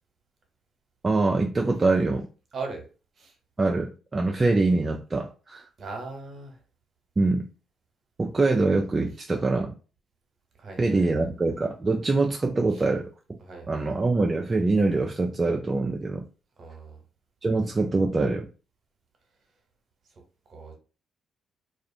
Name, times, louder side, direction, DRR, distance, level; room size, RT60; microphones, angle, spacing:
voice 1, 1.0-2.3 3.6-5.6 7.2-7.5 8.2-9.7 10.8-13.4 13.7-16.3 17.4-18.5, right 3 dB, 30° right, 2 dB, 0.3 m, -24 dB
voice 2, 2.5-2.9 3.2-3.3 5.8-6.6 10.6-11.3 12.7-12.8 13.4-13.9 16.6-17.0 20.5-20.7, right 3 dB, 50° right, 2 dB, 1.0 m, -39 dB
2.4 x 2.3 x 2.7 m, 0.35 s
supercardioid pair, 55°, 0 cm